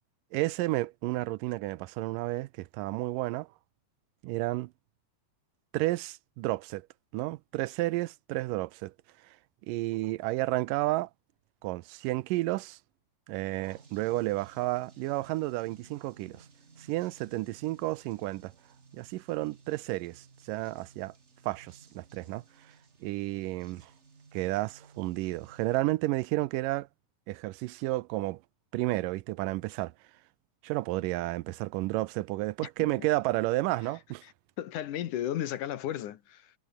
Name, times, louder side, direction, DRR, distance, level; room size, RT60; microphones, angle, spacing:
voice 1, 0.3-3.5 4.2-4.7 5.7-6.9 7.1-8.9 9.2-9.4 9.7-11.1 11.6-12.8 13.3-16.5 16.8-18.5 18.9-21.1 21.4-22.7 23.0-23.9 24.3-26.9 27.3-28.4 28.7-29.9 30.6-34.2, right 19 dB, 80° right, 2.3 m, -31 dB
sound 1, 13.6-25.8, right 4 dB, 25° right, 1.6 m, -58 dB
voice 2, 34.6-36.5, left 11 dB, 70° left, 2.8 m, -34 dB
omnidirectional pair, 3.9 m